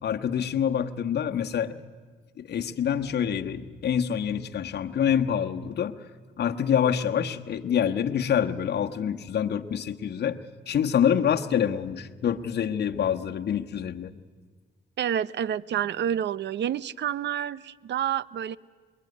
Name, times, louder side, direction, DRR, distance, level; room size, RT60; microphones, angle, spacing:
voice 1, 0.0-1.8 2.4-5.9 6.4-10.4 10.7-14.1, left 8 dB, 55° left, 5 dB, 1.3 m, -26 dB
voice 2, 15.0-18.6, right 9 dB, 65° right, 19 dB, 0.7 m, -28 dB
27.0 x 21.5 x 9.6 m, 1.5 s
cardioid pair, 90°, 20 cm